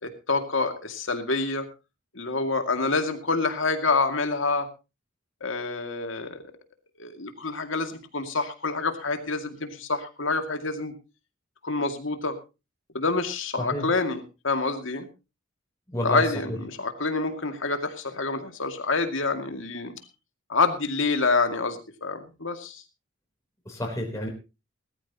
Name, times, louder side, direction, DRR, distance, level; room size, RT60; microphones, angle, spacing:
voice 1, 0.0-1.7 2.1-4.7 5.4-6.4 7.0-10.9 11.6-12.3 12.9-15.1 16.0-20.0 20.5-22.8, left 3 dB, 70° left, 7 dB, 2.3 m, -27 dB
voice 2, 15.9-16.6 23.6-24.3, left 1 dB, 15° left, -1 dB, 3.5 m, -30 dB
19.5 x 14.0 x 2.9 m, 0.28 s
head